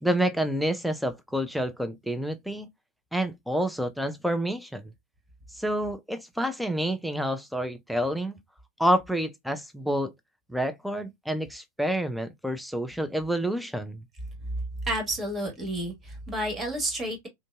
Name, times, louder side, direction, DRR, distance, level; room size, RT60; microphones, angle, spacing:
voice 1, 0.0-2.7 3.1-4.8 5.6-8.4 8.8-10.1 10.5-14.0, equal, ahead, 0.5 m, -28 dB
voice 2, 14.8-17.3, right 1 dB, 20° right, 1.5 m, -31 dB
3.6 x 2.6 x 2.3 m
figure-of-eight pair, 90°, 0 cm